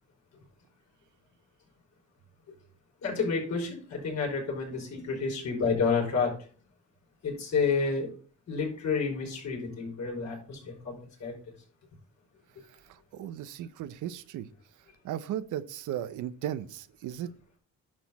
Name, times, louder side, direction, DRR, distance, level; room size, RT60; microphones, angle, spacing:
voice 1, 3.0-6.3 7.2-8.1 8.5-10.9 11.2-11.3, left 5 dB, 65° left, 0 dB, 5.4 m, -29 dB
voice 2, 12.9-14.5 15.0-17.3, right 11 dB, 85° right, 13 dB, 0.8 m, -36 dB
11.0 x 6.3 x 4.2 m, 0.42 s
cardioid pair, 90°, 30 cm